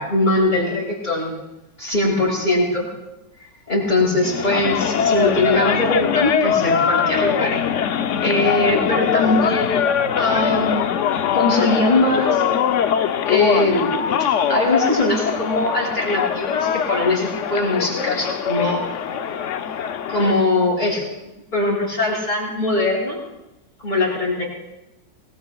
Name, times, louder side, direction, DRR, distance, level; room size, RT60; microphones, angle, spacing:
voice 1, 0.0-1.3 1.8-2.9 3.7-7.6 8.2-9.8 10.2-10.9 11.3-12.4 13.2-18.8 20.1-21.1 21.5-23.2 23.8-24.4, left 2 dB, 25° left, -5 dB, 8.2 m, -21 dB
sound 1, 4.2-20.4, left 8 dB, 65° left, 0.7 m, -22 dB
27.0 x 21.0 x 2.3 m, 0.96 s
omnidirectional pair, 1.9 m